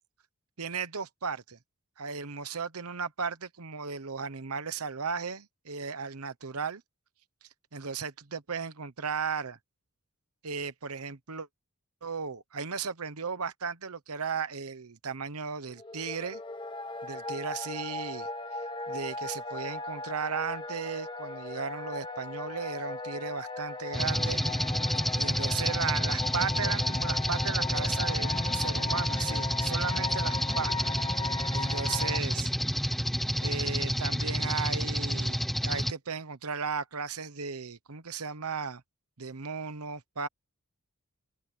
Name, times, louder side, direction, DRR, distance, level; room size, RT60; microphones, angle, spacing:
voice 1, 0.6-1.6 2.0-6.8 7.7-9.6 10.4-11.5 12.0-16.4 17.0-18.3 18.9-24.4 25.2-30.9 31.5-32.5 33.4-38.8 39.2-40.3, right 5 dB, 85° right, 1.1 m, -36 dB
sound 1, 15.7-32.2, left 3 dB, 20° left, 1.7 m, -38 dB
sound 2, 23.9-35.9, equal, ahead, 0.8 m, -29 dB
sound 3, 28.0-30.0, left 3 dB, 40° left, 1.6 m, -49 dB
open air
head